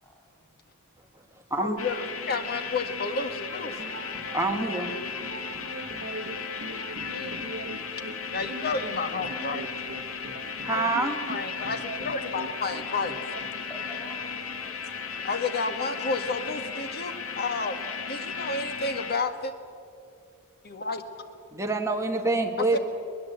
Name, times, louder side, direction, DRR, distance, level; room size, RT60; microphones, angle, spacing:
voice 1, 1.5-3.8 7.1-7.5 8.3-9.7 10.7-10.9 11.3-13.2 15.2-17.7 18.1-19.5 20.6-21.0 22.7-22.8, left 3 dB, 45° left, 8 dB, 1.6 m, -31 dB
sound 1, 1.8-19.2, left 6 dB, 65° left, 1.3 m, -36 dB
sound 2, 3.7-13.5, right 2 dB, 60° right, 1.3 m, -41 dB
voice 2, 4.3-4.9 10.6-11.2 21.5-22.8, right 2 dB, 15° right, 2 dB, 1.8 m, -26 dB
voice 3, 13.7-15.2, equal, 10° left, -2 dB, 6.8 m, -48 dB
21.5 x 20.0 x 8.2 m, 2.5 s
head